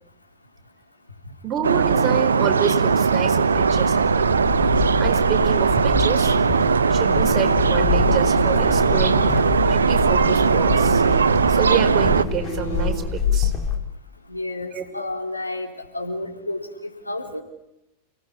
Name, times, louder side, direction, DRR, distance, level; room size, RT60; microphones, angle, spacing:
voice 1, 1.4-4.3 5.0-6.4 6.9-9.3 9.7-11.0 11.5-13.5 14.7-14.8, right 7 dB, 30° right, 5 dB, 4.4 m, -28 dB
sound 1, 1.6-12.2, right 5 dB, 70° right, 0.9 m, -19 dB
sound 2, 3.5-13.8, left 5 dB, 20° left, 4.7 m, -27 dB
sound 3, 7.9-13.5, equal, 65° left, 7.2 m, -34 dB
voice 2, 14.3-15.7 15.9-17.4, left 2 dB, 85° left, 2 dB, 4.0 m, -30 dB
30.0 x 19.0 x 10.0 m, 0.89 s
figure-of-eight pair, 90°, 0 cm